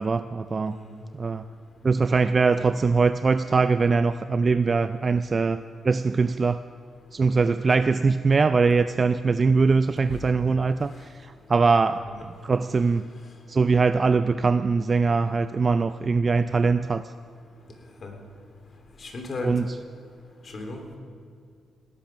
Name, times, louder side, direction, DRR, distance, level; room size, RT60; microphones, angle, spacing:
voice 1, 0.0-0.8 1.1-1.4 1.8-6.6 7.1-12.1 12.4-13.1 13.5-17.1 19.4-19.7, right 4 dB, 40° right, 12 dB, 0.4 m, -22 dB
voice 2, 19.0-19.5 20.5-21.0, left 2 dB, 50° left, 3 dB, 3.0 m, -35 dB
17.5 x 11.0 x 6.0 m, 2.3 s
cardioid pair, 70°, 0 cm